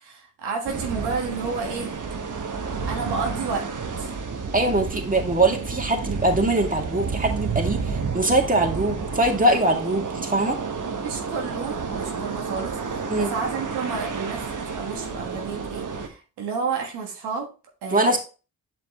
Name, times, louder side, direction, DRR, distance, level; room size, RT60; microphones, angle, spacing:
voice 1, 0.0-2.0 2.8-3.7 4.0-4.1 11.0-17.5 17.8-18.2, right 5 dB, 85° right, 1 dB, 1.5 m, -31 dB
sound 1, 0.6-16.1, right 5 dB, 50° right, 1.4 m, -30 dB
voice 2, 4.5-10.6 13.1-13.3 17.9-18.2, right 2 dB, 20° right, 2 dB, 2.1 m, -22 dB
7.7 x 6.0 x 3.0 m, 0.33 s
supercardioid pair, 45°, 39 cm